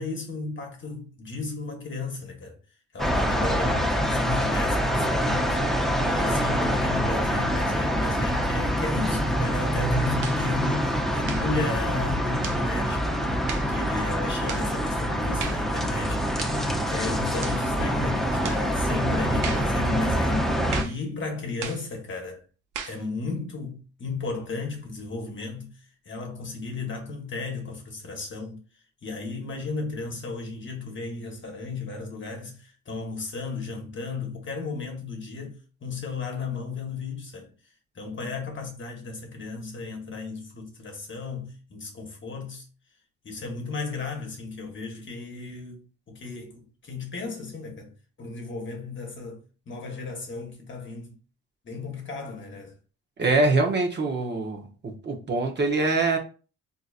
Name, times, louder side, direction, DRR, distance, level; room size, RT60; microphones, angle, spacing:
voice 1, 0.0-2.6 2.9-13.2 13.7-22.4 22.8-25.8 26.0-28.6 29.0-37.5 37.9-42.7 43.2-45.8 46.1-47.9 48.2-51.2 51.6-52.7, left 4 dB, 40° left, 1.1 m, -35 dB
sound 1, 3.0-20.8, equal, ahead, 0.6 m, -25 dB
sound 2, 10.2-10.5 11.2-11.5 12.4-12.7 13.5-13.7 14.5-14.7 15.4-15.7 16.4-16.6 17.4-17.6 18.4-18.7 19.4-19.7 20.7-21.0 21.6-21.9 22.7-23.0, right 7 dB, 80° right, 0.6 m, -36 dB
voice 2, 53.2-56.2, right 3 dB, 35° right, 0.8 m, -24 dB
3.9 x 2.7 x 2.4 m
cardioid pair, 90°, 30 cm